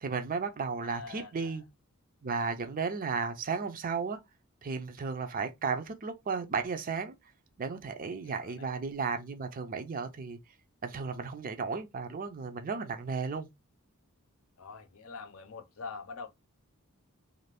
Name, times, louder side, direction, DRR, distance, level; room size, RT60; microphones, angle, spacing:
voice 1, 0.0-1.6 2.2-4.2 4.6-7.1 7.6-10.4 10.8-13.5, right 5 dB, 40° right, 0.5 m, -34 dB
voice 2, 0.8-1.6 8.2-8.7 14.6-16.3, left 4 dB, 70° left, 0.7 m, -45 dB
2.6 x 2.4 x 3.3 m
head